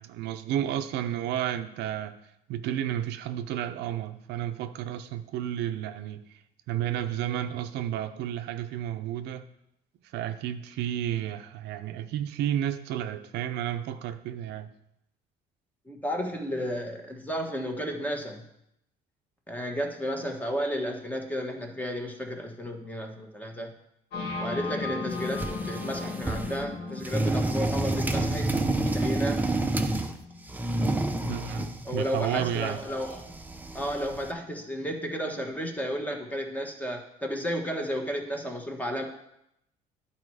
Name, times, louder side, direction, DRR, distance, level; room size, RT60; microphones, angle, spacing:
voice 1, 0.0-2.2 2.5-6.4 6.7-9.5 10.1-14.7 31.2-32.8, right 11 dB, 80° right, 8 dB, 0.6 m, -32 dB
voice 2, 15.9-18.4 19.5-23.7 24.4-28.5 28.8-29.4 31.8-33.2 33.7-39.0, equal, 10° left, 3 dB, 1.3 m, -33 dB
sound 1, 24.1-33.7, left 4 dB, 85° left, 2.4 m, -38 dB
sound 2, 25.1-26.6 27.0-30.2 30.5-34.3, right 2 dB, 10° right, 0.6 m, -29 dB
11.5 x 4.3 x 4.8 m, 0.80 s
cardioid pair, 110°, 17 cm